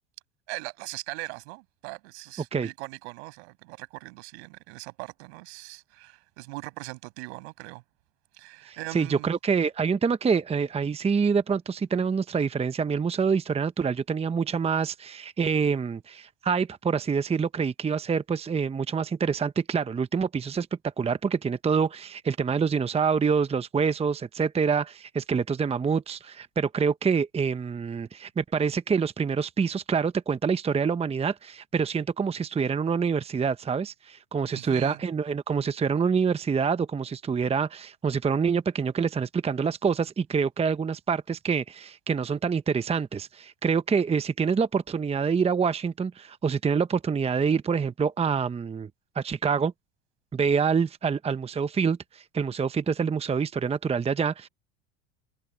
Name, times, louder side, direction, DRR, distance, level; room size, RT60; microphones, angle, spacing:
voice 1, 0.5-7.8 8.3-9.3 34.5-35.0, right 26 dB, 75° right, 6.6 m, -40 dB
voice 2, 8.6-48.9 49.1-49.7 50.3-54.5, right 6 dB, 20° right, 0.9 m, -26 dB
hypercardioid pair, 90°, 34 cm